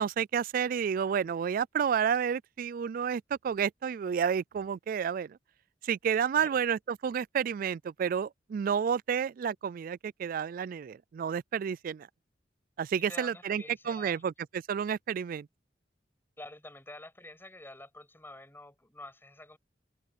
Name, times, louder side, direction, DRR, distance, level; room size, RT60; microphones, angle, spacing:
voice 1, 0.0-5.4 5.8-12.1 12.8-15.5, right 7 dB, 50° right, 0.3 m, -30 dB
voice 2, 13.0-14.3 16.4-19.6, left 2 dB, 15° left, 6.9 m, -48 dB
head